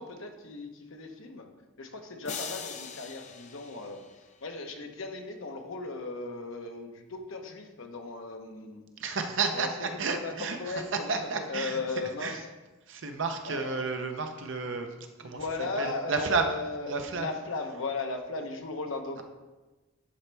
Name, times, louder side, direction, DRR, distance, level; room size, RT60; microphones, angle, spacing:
voice 1, 0.0-1.5 1.8-4.0 4.4-8.8 9.5-9.7 10.1-12.4 13.4-13.8 15.3-19.2, left 3 dB, 70° left, 4 dB, 0.9 m, -37 dB
sound 1, 2.2-4.6, left 6 dB, 35° left, 0.5 m, -42 dB
voice 2, 9.0-11.8 12.2-12.4 12.9-15.5 15.8-16.6 16.9-17.3, right 4 dB, 60° right, 5 dB, 0.7 m, -31 dB
11.0 x 4.3 x 3.4 m, 1.2 s
head